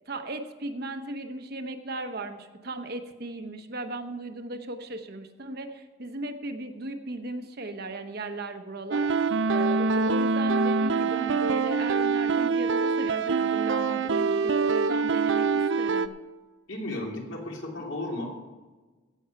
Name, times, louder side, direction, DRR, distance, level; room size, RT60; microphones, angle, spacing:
voice 1, 0.1-16.1, right 2 dB, 50° right, 6 dB, 1.0 m, -36 dB
sound 1, 8.9-16.1, right 4 dB, 70° right, 0.5 m, -25 dB
voice 2, 16.7-18.5, left 1 dB, 70° left, -1 dB, 2.9 m, -34 dB
16.5 x 7.1 x 5.8 m, 1.3 s
head